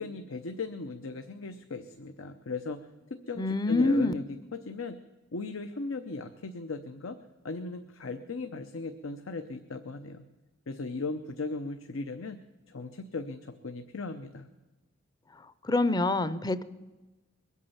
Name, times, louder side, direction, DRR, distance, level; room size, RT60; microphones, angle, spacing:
voice 1, 0.0-5.0 5.3-7.2 7.4-10.2 10.7-12.4 12.7-14.5, left 3 dB, 90° left, 8 dB, 0.8 m, -37 dB
voice 2, 3.4-4.1 15.6-16.6, left 2 dB, 20° left, 15 dB, 0.5 m, -25 dB
22.5 x 8.4 x 7.1 m, 1.2 s
head